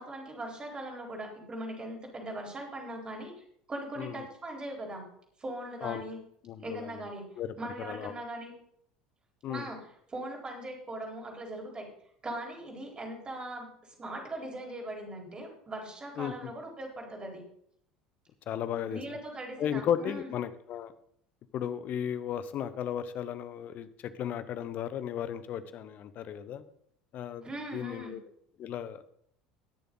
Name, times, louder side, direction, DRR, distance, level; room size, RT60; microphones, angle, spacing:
voice 1, 0.0-5.0 5.4-6.2 6.6-8.5 9.5-9.8 10.1-11.9 12.2-13.7 14.0-17.4 18.9-20.3 27.4-28.2, right 1 dB, 25° right, 1 dB, 4.3 m, -40 dB
voice 2, 6.4-6.9 7.4-8.2 9.4-9.7 16.2-16.5 18.5-19.0 19.6-20.9 21.5-26.6 27.1-28.2 28.6-29.0, left 9 dB, 45° left, 13 dB, 0.9 m, -35 dB
20.0 x 6.9 x 4.0 m, 0.66 s
figure-of-eight pair, 70°, 4 cm